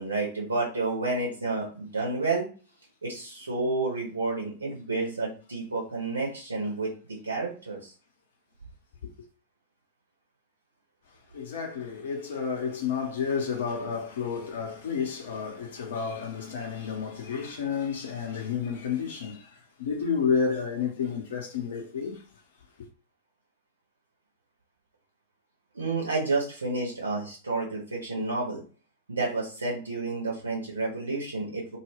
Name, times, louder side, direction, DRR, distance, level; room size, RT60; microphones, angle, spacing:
voice 1, 0.0-2.5 3.0-6.9 7.2-7.9 25.7-28.6 29.1-31.8, right 3 dB, 75° right, 0.8 m, -30 dB
voice 2, 11.3-22.3 22.8-22.9, left 6 dB, 60° left, 0.7 m, -31 dB
2.3 x 2.2 x 3.3 m
figure-of-eight pair, 90°, 0 cm